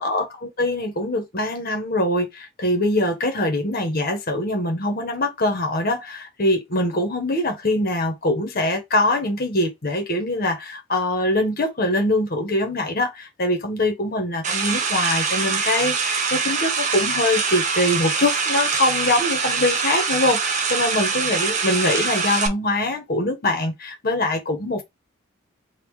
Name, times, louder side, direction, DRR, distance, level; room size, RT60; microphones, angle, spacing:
voice 1, 0.0-24.8, left 1 dB, 45° left, 1.0 m, -23 dB
sound 1, 14.4-22.5, right 5 dB, 35° right, 0.6 m, -24 dB
3.6 x 2.4 x 4.5 m
head